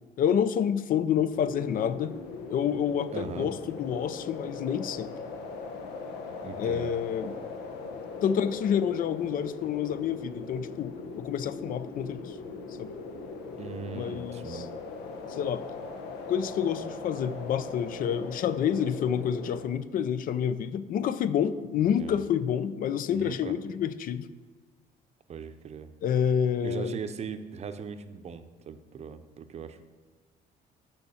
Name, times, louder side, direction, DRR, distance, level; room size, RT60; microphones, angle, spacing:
voice 1, 0.2-2.1 2.5-5.1 6.6-7.3 8.2-12.4 12.8-12.9 13.9-14.7 15.3-15.6 16.3-24.3 26.0-27.0, left 8 dB, 55° left, 14 dB, 0.5 m, -28 dB
Howling Wind, 1.3-19.7, left 4 dB, 90° left, 1.1 m, -40 dB
voice 2, 3.1-3.5 6.4-7.0 13.6-14.7 21.8-22.2 23.1-23.5 25.3-25.9 26.6-29.8, right 6 dB, 40° right, 10 dB, 0.6 m, -39 dB
6.6 x 5.7 x 7.0 m, 1.4 s
cardioid pair, 110°, 17 cm